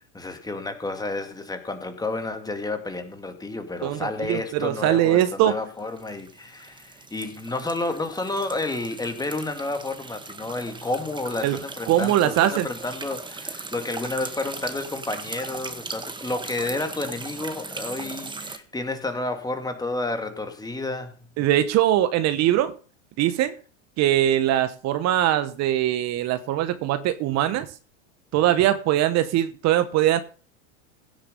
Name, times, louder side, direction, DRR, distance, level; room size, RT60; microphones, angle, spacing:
voice 1, 0.1-21.2, left 2 dB, 10° left, 2.3 m, -30 dB
voice 2, 3.8-5.6 11.4-11.6 11.9-12.7 21.4-22.7 23.2-23.5 24.0-27.7 28.3-30.2, right 12 dB, 45° right, 1.2 m, -21 dB
sound 1, 5.8-18.6, right 3 dB, 10° right, 1.6 m, -38 dB
16.5 x 7.1 x 5.4 m
hypercardioid pair, 105°, 37 cm